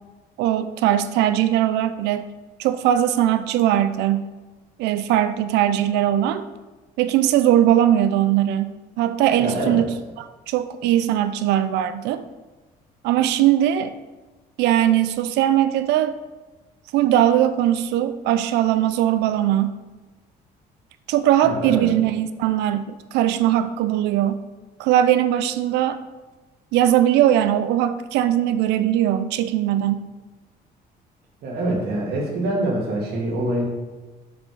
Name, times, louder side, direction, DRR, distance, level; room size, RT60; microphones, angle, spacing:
voice 1, 0.4-2.2 2.6-4.3 4.8-6.5 7.0-12.2 13.0-13.9 14.6-16.2 16.9-19.8 21.1-24.4 24.8-26.0 26.7-30.1, right 11 dB, 85° right, 11 dB, 0.5 m, -20 dB
voice 2, 9.4-9.8 21.4-21.9 31.4-33.6, right 1 dB, 70° right, -1 dB, 2.2 m, -25 dB
7.7 x 4.5 x 4.6 m, 1.2 s
cardioid pair, 110°, 17 cm